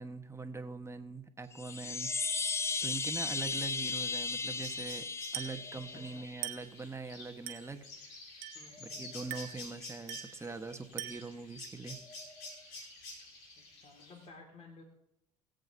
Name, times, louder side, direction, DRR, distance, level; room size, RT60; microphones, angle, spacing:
voice 1, 0.0-2.1 2.8-5.1 5.3-7.9 8.8-12.0, right 3 dB, 15° right, 6 dB, 1.3 m, -42 dB
sound 1, 1.5-6.6, left 4 dB, 15° left, 0.4 m, -36 dB
sound 2, 1.7-14.3, left 2 dB, 70° left, 3.1 m, -50 dB
Glass, 5.3-5.7 6.4-6.8 7.5-7.8 8.4-8.8 9.3-9.7 10.1-10.4 11.0-11.4, right 13 dB, 80° right, 1.3 m, -42 dB
voice 2, 5.9-6.3 8.5-9.3 13.6-14.8, left 3 dB, 40° left, 3 dB, 2.1 m, -55 dB
21.0 x 7.9 x 2.7 m, 0.84 s
hypercardioid pair, 70°, 18 cm